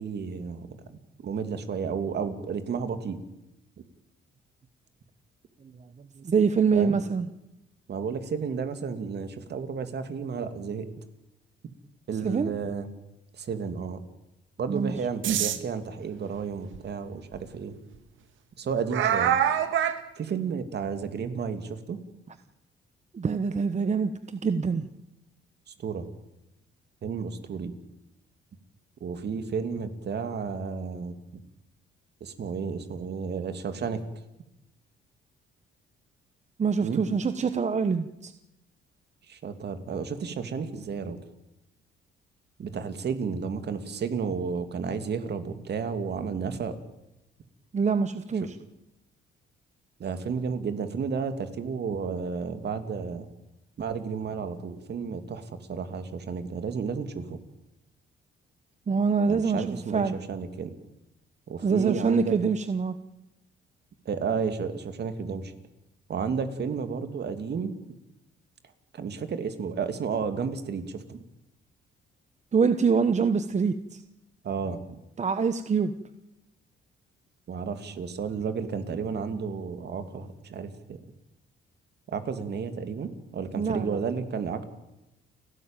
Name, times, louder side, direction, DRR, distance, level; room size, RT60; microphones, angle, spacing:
voice 1, 0.0-3.2 6.7-7.0 7.9-10.9 12.1-12.9 13.3-14.0 14.6-17.8 18.6-19.3 20.2-22.0 25.7-26.1 27.0-27.7 29.0-31.4 32.2-34.0 36.8-37.0 39.3-41.2 42.6-46.8 48.4-48.5 50.0-53.3 53.8-57.4 59.3-60.8 61.5-62.4 64.0-65.5 66.1-67.7 68.9-71.2 74.4-75.0 77.5-81.0 82.1-84.6, right 6 dB, 55° right, 9 dB, 2.7 m, -32 dB
voice 2, 6.2-7.3 12.2-12.6 14.7-14.9 23.1-24.8 36.6-38.3 47.7-48.5 58.9-60.2 61.6-63.0 72.5-74.0 75.2-75.9 83.6-84.0, right 5 dB, 35° right, 10 dB, 1.2 m, -25 dB
sound 1, 15.2-15.6 16.7-16.8 17.3-17.4 18.9-20.0, right 9 dB, 75° right, 2.0 m, -24 dB
30.0 x 13.0 x 9.1 m, 0.92 s
cardioid pair, 90°, 20 cm